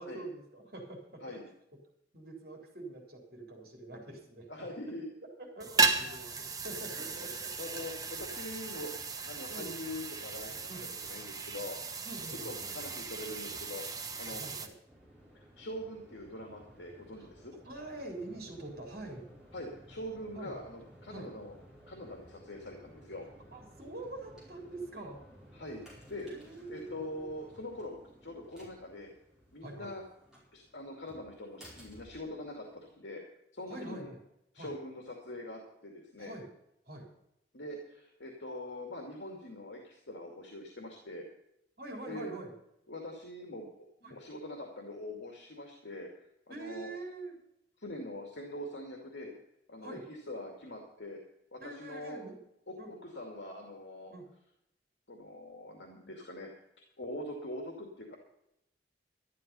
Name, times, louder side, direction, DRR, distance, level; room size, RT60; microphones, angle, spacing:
voice 1, 0.0-1.4 2.1-4.5 5.4-7.5 9.5-9.7 10.7-10.9 12.0-13.0 14.2-14.7 17.2-17.3 17.6-19.2 20.3-20.6 21.1-21.3 23.5-25.2 26.2-27.3 29.6-30.1 33.7-34.2 34.6-34.7 36.2-36.5 36.9-37.1 41.8-42.5 44.0-44.2 46.5-47.3 49.8-50.1 51.6-52.4 52.8-52.9 54.1-54.3, right 2 dB, 50° right, 1 dB, 3.7 m, -45 dB
voice 2, 4.5-5.0 7.0-7.3 7.6-7.9 8.2-10.7 11.0-11.8 12.3-14.4 15.3-17.6 19.5-21.5 21.9-23.3 25.5-26.3 26.7-28.0 28.2-29.1 29.5-30.0 30.5-33.2 33.5-34.1 34.5-36.3 37.5-41.3 42.1-42.3 42.9-46.1 46.5-46.9 47.8-49.3 49.7-51.2 51.5-52.2 52.7-54.1 55.1-56.5 57.0-58.2, left 1 dB, 80° left, 1 dB, 2.4 m, -43 dB
sound 1, 5.6-14.7, right 4 dB, 20° right, 1.0 m, -35 dB
sound 2, 14.9-32.9, equal, 5° right, 5.0 m, -57 dB
12.5 x 12.0 x 5.5 m, 0.81 s
head